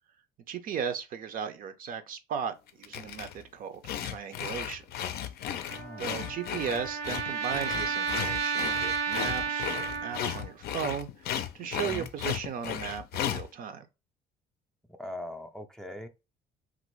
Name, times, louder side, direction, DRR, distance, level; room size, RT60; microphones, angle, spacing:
voice 1, 0.5-4.8 6.0-11.3 11.5-13.9, right 7 dB, 55° right, 0.6 m, -36 dB
sound 1, 2.7-3.4 3.8-13.5, left 10 dB, 70° left, 0.4 m, -35 dB
voice 2, 5.7-6.2 11.7-12.1 15.0-16.1, left 1 dB, 5° left, 0.4 m, -41 dB
Trumpet, 5.7-10.5, right 6 dB, 90° right, 0.7 m, -32 dB
3.0 x 2.6 x 3.0 m
cardioid pair, 110°, 17 cm